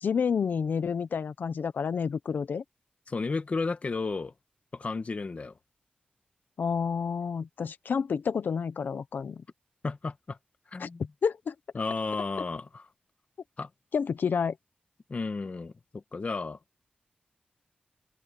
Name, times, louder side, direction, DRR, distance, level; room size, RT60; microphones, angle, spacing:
voice 1, 0.0-2.6 6.6-9.4 10.8-10.9 11.2-11.5 13.9-14.5, left 6 dB, 75° left, 1.0 m, -29 dB
voice 2, 3.1-4.3 4.7-5.5 9.8-10.4 10.7-11.1 11.7-12.9 13.6-13.7 15.1-16.6, left 4 dB, 45° left, 1.6 m, -33 dB
open air
wide cardioid pair, 105°, 3 cm